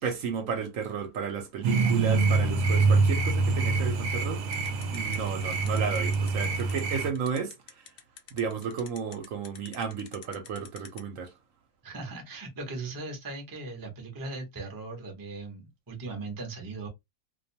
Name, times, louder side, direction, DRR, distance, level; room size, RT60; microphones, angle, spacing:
voice 1, 0.0-4.5 4.9-7.9 8.3-11.3, right 6 dB, 65° right, 1.0 m, -33 dB
sound 1, 1.6-7.1, right 3 dB, 90° right, 1.1 m, -25 dB
sound 2, 4.5-11.0, left 8 dB, 80° left, 0.5 m, -46 dB
voice 2, 11.8-16.9, right 3 dB, 20° right, 0.5 m, -38 dB
2.5 x 2.3 x 2.7 m
omnidirectional pair, 1.6 m